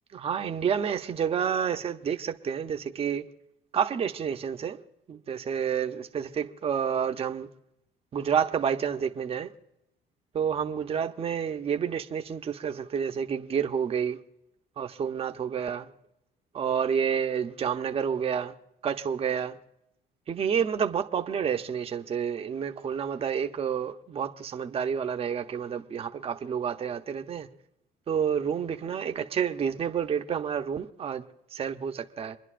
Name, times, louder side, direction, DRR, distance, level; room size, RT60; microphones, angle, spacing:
voice 1, 0.1-3.2 3.7-4.8 5.1-7.5 8.1-9.5 10.3-14.2 14.8-15.9 16.5-18.5 18.8-19.6 20.3-27.5 28.1-32.4, right 7 dB, 35° right, 0.7 m, -29 dB
27.5 x 10.5 x 2.5 m
cardioid pair, 110°, 17 cm